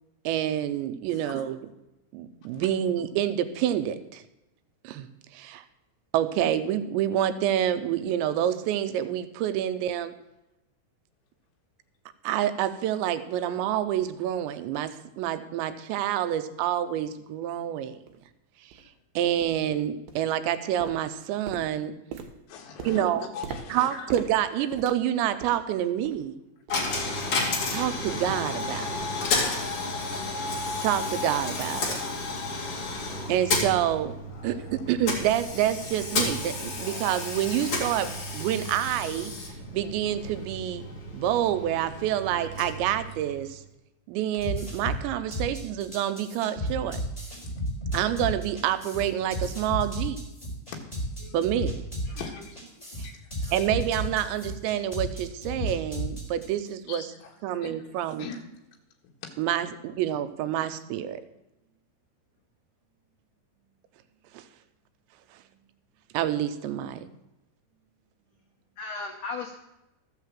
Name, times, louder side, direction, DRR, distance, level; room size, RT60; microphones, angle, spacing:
voice 1, 0.2-1.6 2.1-4.2 4.8-5.1 5.3-5.6 6.1-10.1 12.2-18.0 19.2-22.0 22.8-23.2 23.7-26.4 27.7-29.1 30.8-32.0 33.3-34.1 34.4-39.3 39.7-40.8 41.1-43.6 44.1-47.0 47.9-50.2 51.3-51.8 53.5-57.0 57.4-58.3 59.4-61.2 64.3-64.4 66.1-67.1, right 11 dB, 90° right, 11 dB, 2.9 m, -27 dB
voice 2, 1.1-1.5 2.4-2.7 22.5-24.1 24.6-24.7 27.7-27.8 28.8-29.1 32.9-33.1 46.9-47.0 47.8-48.0 50.7-50.8 51.2-51.4 52.2-52.5 53.0-53.3 56.9-57.9 58.2-58.4 59.2-59.3, left 6 dB, 60° left, 0 dB, 3.2 m, -42 dB
sound 1, 17.4-17.5 18.1-18.2 18.7-18.9 19.4-19.7 20.1-20.5 20.8-25.7 26.0-26.3 26.7-26.9 27.4-27.5, right 6 dB, 70° right, 2.3 m, -42 dB
Coin (dropping), 26.7-43.6, left 2 dB, 40° left, 2.2 m, -32 dB
voice 3, 30.3-30.8 33.6-33.7 44.6-44.7 51.2-51.4 52.1-52.2 53.4-53.5 68.8-69.6, left 4 dB, 80° left, 2 dB, 1.8 m, -39 dB
sound 2, 44.4-56.7, equal, 10° left, 3.4 m, -33 dB
14.0 x 6.1 x 7.5 m, 0.94 s
omnidirectional pair, 5.1 m